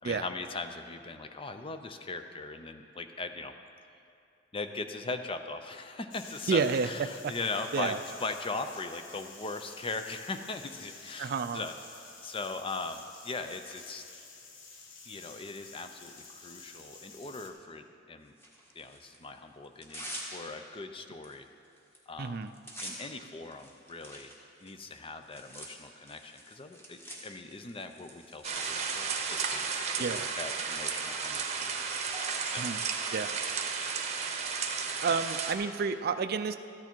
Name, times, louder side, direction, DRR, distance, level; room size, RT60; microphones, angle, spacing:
voice 1, 0.0-3.5 4.5-14.0 15.1-18.3 18.7-21.5 22.1-22.5 22.8-24.3 24.6-31.7 32.5-32.7 35.1-35.2, left 3 dB, 30° left, 8 dB, 0.5 m, -40 dB
sound 1, 6.1-17.5, left 4 dB, 80° left, 1.2 m, -50 dB
voice 2, 6.5-6.9 7.2-7.3 7.7-8.0 11.2-11.6 22.2-22.5 30.0-30.3 32.6-32.8 33.1-33.3 35.0-36.6, right 5 dB, 50° right, 10 dB, 0.4 m, -30 dB
Tearing, 18.4-19.2 19.6-20.7 21.2-21.3 21.6-22.0 22.2-31.3, equal, 10° left, 1.6 m, -47 dB
sound 2, 28.4-35.5, right 5 dB, 35° right, 0.9 m, -33 dB
13.5 x 9.6 x 4.5 m, 2.5 s
head